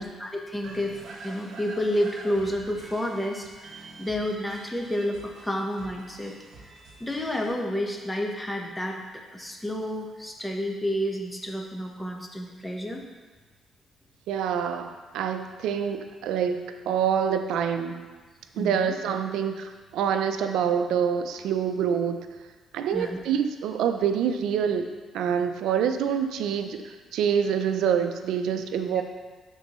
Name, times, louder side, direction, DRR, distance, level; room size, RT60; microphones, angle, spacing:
voice 1, 0.0-6.3 7.0-13.0 18.6-18.9 22.9-23.2 28.9-29.0, equal, 10° left, 1 dB, 1.1 m, -30 dB
sound 1, 0.6-7.5, right 3 dB, 70° right, 1.5 m, -46 dB
voice 2, 14.3-18.0 18.5-22.3 22.7-24.9 25.1-29.0, right 8 dB, 85° right, 8 dB, 0.4 m, -26 dB
12.0 x 4.4 x 3.0 m, 1.3 s
cardioid pair, 90°, 0 cm